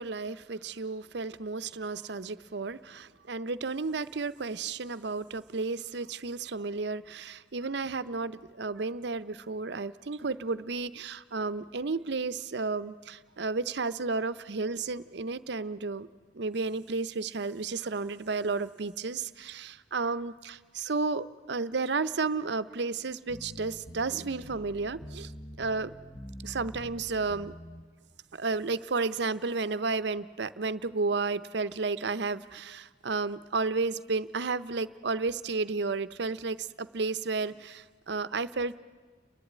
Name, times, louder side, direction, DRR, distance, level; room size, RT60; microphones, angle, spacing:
voice 1, 0.0-16.1 16.3-25.3 25.6-25.9 26.4-27.5 28.3-38.8, right 4 dB, 65° right, 15 dB, 0.7 m, -32 dB
sound 1, 23.3-27.8, equal, 30° left, 1.1 m, -46 dB
30.0 x 11.5 x 9.6 m, 1.4 s
head